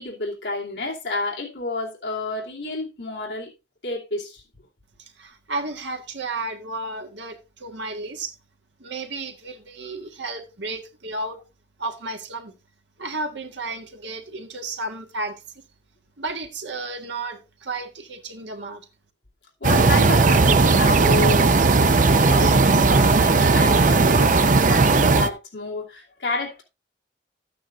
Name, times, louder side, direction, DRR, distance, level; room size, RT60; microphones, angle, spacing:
voice 1, 0.0-3.5 3.8-4.4 19.6-26.6, left 2 dB, 65° left, 2.8 m, -30 dB
voice 2, 5.0-8.3 8.8-11.4 11.8-12.6 13.0-15.4 16.2-18.9, right 2 dB, 70° right, 1.6 m, -33 dB
sound 1, 19.6-25.3, right 3 dB, 40° right, 0.6 m, -17 dB
12.5 x 9.1 x 2.5 m
head